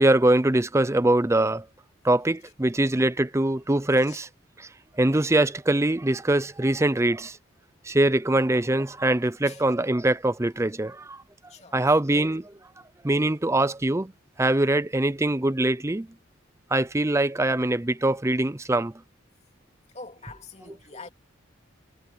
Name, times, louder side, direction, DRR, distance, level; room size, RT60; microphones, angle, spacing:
voice 1, 0.0-1.7 2.0-4.3 4.6-4.7 5.0-7.4 7.9-11.2 11.7-12.5 13.0-14.1 14.4-16.1 16.7-18.9 20.7-20.8, right 1 dB, 15° right, 0.5 m, -23 dB
voice 2, 19.9-21.1, left 3 dB, 30° left, 2.9 m, -44 dB
head